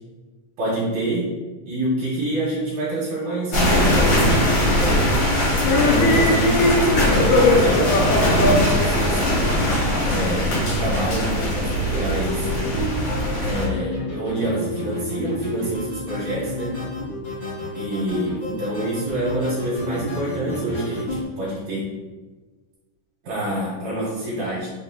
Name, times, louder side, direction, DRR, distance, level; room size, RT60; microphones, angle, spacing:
voice 1, 0.6-1.3 1.7-4.4 4.8-5.4 5.8-7.9 8.3-9.2 10.0-12.5 13.4-16.8 17.8-22.0 23.2-24.7, right 1 dB, 70° right, -7 dB, 2.0 m, -27 dB
sound 1, 3.5-13.7, equal, 60° left, 1.1 m, -21 dB
sound 2, 5.6-10.2, left 2 dB, 80° left, 2.0 m, -20 dB
sound 3, 11.9-21.2, left 1 dB, 45° left, 0.9 m, -31 dB
5.7 x 2.6 x 2.7 m, 1.3 s
omnidirectional pair, 3.7 m